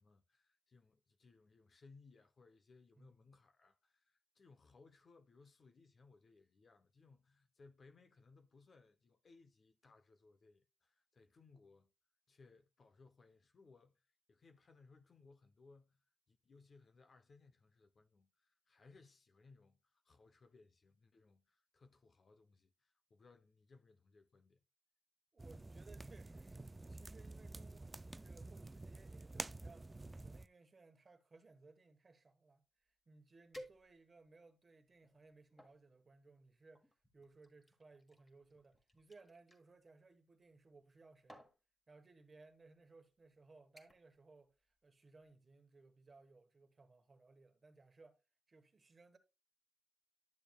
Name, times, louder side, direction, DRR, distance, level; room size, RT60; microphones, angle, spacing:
voice 1, 0.0-11.9 12.3-14.0 14.3-16.0 16.3-24.6, left 4 dB, 50° left, 0.7 m, -65 dB
voice 2, 3.0-3.3 25.3-41.4 41.9-48.2 48.5-49.2, right 3 dB, 40° right, 1.2 m, -63 dB
sound 1, 25.4-30.5, right 2 dB, 20° right, 0.3 m, -49 dB
sound 2, 32.9-33.0 33.5-34.3 34.9-35.8 36.7-39.6 40.7-41.0 41.3-41.6 42.5-42.6 43.1-43.3 43.8-44.2 44.5-44.8 45.2-45.3, equal, 20° left, 1.6 m, -59 dB
10.5 x 6.8 x 2.3 m
cardioid pair, 85°, 0 cm